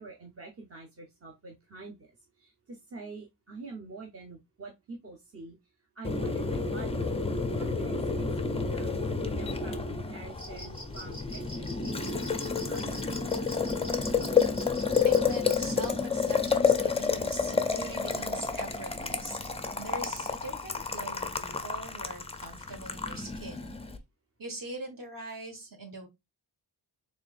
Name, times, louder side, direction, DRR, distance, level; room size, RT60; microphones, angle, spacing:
voice 1, 0.0-5.6 6.0-7.1 7.6-13.3, right 3 dB, 30° right, 1 dB, 0.8 m, -46 dB
Boiling, 6.0-24.0, left 5 dB, 15° left, 0.4 m, -30 dB
sound 1, 10.3-15.9, left 1 dB, 10° right, 1.4 m, -45 dB
voice 2, 14.8-23.7 24.4-26.1, right 2 dB, 50° right, 2 dB, 1.5 m, -42 dB
4.3 x 3.3 x 2.4 m, 0.20 s
wide cardioid pair, 120°, 44 cm